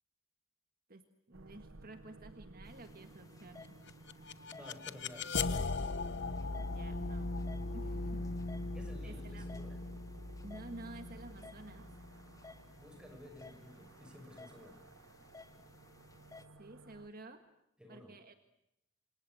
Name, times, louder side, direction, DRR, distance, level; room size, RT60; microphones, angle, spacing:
voice 1, 0.9-3.8 6.6-7.3 7.7-8.2 9.0-9.4 10.4-11.9 16.6-17.4 17.9-18.3, right 2 dB, 45° right, 7 dB, 1.8 m, -51 dB
sound 1, 1.3-17.1, right 3 dB, 80° right, 1.2 m, -57 dB
sound 2, 2.6-16.4, left 3 dB, 15° left, 1.7 m, -58 dB
sound 3, 3.9-12.8, left 3 dB, 60° left, 1.0 m, -39 dB
voice 2, 4.5-5.3 8.7-9.8 12.8-14.8 17.8-18.1, left 1 dB, 5° right, 4 dB, 6.6 m, -53 dB
28.0 x 27.0 x 7.9 m, 0.82 s
head